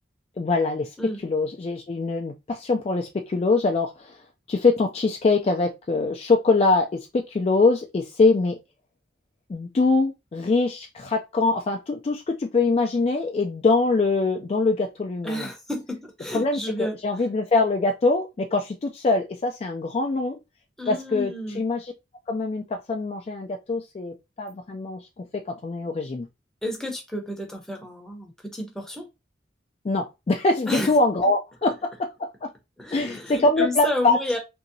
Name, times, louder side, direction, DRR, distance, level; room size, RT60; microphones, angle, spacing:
voice 1, 0.4-0.9 1.2-4.2 4.5-8.6 9.5-15.5 16.3-20.4 20.9-21.9 22.3-26.3 29.8-32.5 32.9-34.4, left 3 dB, 35° left, 0.3 m, -23 dB
voice 2, 15.2-17.0 20.8-21.6 26.6-29.1 30.7-30.9 32.8-34.4, left 1 dB, 5° left, 0.6 m, -31 dB
2.8 x 2.7 x 2.6 m
head